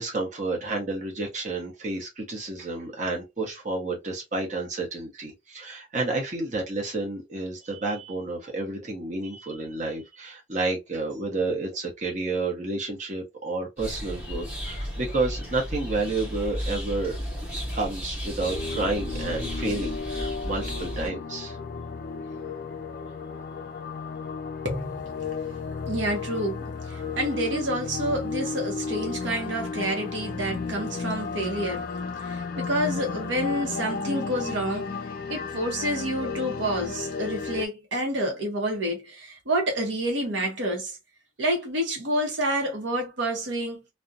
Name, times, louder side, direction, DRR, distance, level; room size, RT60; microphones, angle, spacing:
voice 1, 0.0-17.2 17.7-21.6, right 2 dB, 40° right, 0.9 m, -30 dB
sound 1, 13.8-21.1, equal, 10° right, 1.0 m, -34 dB
sound 2, 18.4-37.7, left 4 dB, 50° left, 0.3 m, -33 dB
voice 2, 24.6-25.3 25.9-31.9 32.2-35.0 35.3-41.0 41.4-43.8, right 1 dB, 75° right, 0.8 m, -28 dB
2.4 x 2.1 x 2.5 m
head